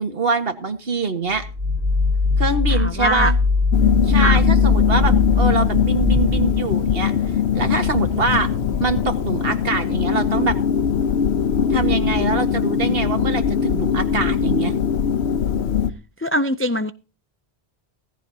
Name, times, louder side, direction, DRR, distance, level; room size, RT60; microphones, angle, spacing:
voice 1, 0.0-1.5 2.4-3.4 4.0-7.1 7.5-8.5 8.8-10.6 11.7-14.7, right 3 dB, 65° right, 1.9 m, -24 dB
sound 1, 1.3-6.8, left 4 dB, 80° right, 3.1 m, -20 dB
voice 2, 2.7-3.3 4.2-4.4 16.2-16.9, equal, 20° left, 0.3 m, -22 dB
sound 2, 3.7-15.9, left 8 dB, 85° left, 1.1 m, -21 dB
16.5 x 15.0 x 2.8 m
omnidirectional pair, 1.1 m